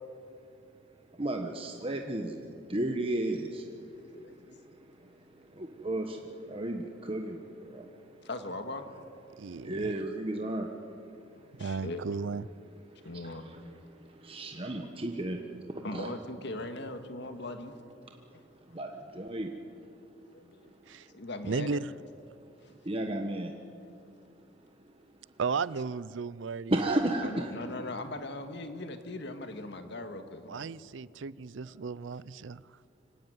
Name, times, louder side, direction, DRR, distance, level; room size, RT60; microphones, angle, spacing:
voice 1, 1.1-8.2 9.3-11.6 12.9-13.6 13.9-16.1 18.7-19.6 21.1-21.2 22.8-23.5 26.7-27.5, right 1 dB, 30° right, 3 dB, 1.3 m, -35 dB
voice 2, 4.1-4.5 8.2-8.9 11.3-12.0 13.0-13.5 15.8-17.7 18.3-18.4 20.3-20.7 21.1-21.8 22.6-22.7 27.2-30.7, left 2 dB, 60° left, 7 dB, 2.0 m, -40 dB
voice 3, 9.4-9.9 11.6-12.5 20.9-21.1 21.4-21.9 25.4-26.9 30.5-32.6, right 5 dB, 70° right, 19 dB, 0.5 m, -34 dB
25.0 x 17.5 x 9.3 m, 2.6 s
head